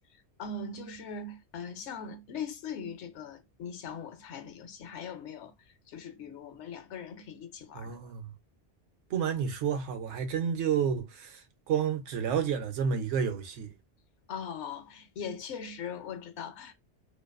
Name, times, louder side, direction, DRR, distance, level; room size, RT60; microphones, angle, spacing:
voice 1, 0.4-5.5 5.9-7.9 14.3-16.7, left 5 dB, 80° left, 0.9 m, -40 dB
voice 2, 7.7-8.3 9.1-11.4 11.7-13.7, right 7 dB, 80° right, 0.9 m, -30 dB
2.5 x 2.4 x 2.2 m
omnidirectional pair, 1.2 m